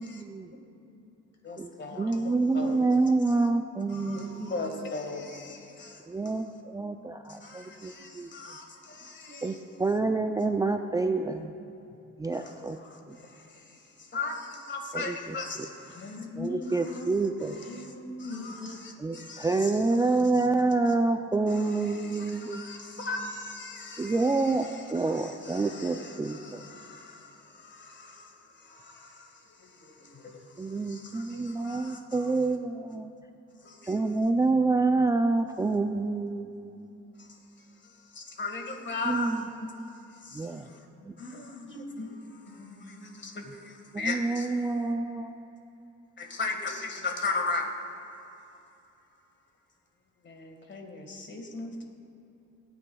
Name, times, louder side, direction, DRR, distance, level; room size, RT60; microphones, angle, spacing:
voice 1, 0.0-1.2 1.9-2.6 3.9-4.1 7.4-7.6 8.9-10.2 15.9-17.3 17.6-18.9 19.2-19.4 20.5-20.6 30.1-30.2 40.8-42.0 42.4-43.4, left 2 dB, 55° left, 1.9 m, -44 dB
voice 2, 1.4-2.9 3.3-3.4 3.9-6.4 7.3-9.6 12.3-16.1 16.7-16.9 17.4-17.9 18.2-20.5 20.9-21.0 21.5-32.4 33.6-34.0 37.1-40.9 41.2-44.7 46.2-48.5 50.2-51.8, left 3 dB, 40° left, 1.7 m, -39 dB
voice 3, 2.0-4.5 6.1-8.3 9.4-9.5 9.8-11.5 12.2-12.8 13.1-13.2 14.9-15.1 16.4-17.6 19.0-22.6 24.0-26.6 30.6-33.1 33.9-36.9 39.1-39.4 40.3-40.7 41.1-41.2 43.9-45.5, right 3 dB, 10° right, 0.3 m, -27 dB
19.0 x 9.7 x 2.3 m
cardioid pair, 90°, 30 cm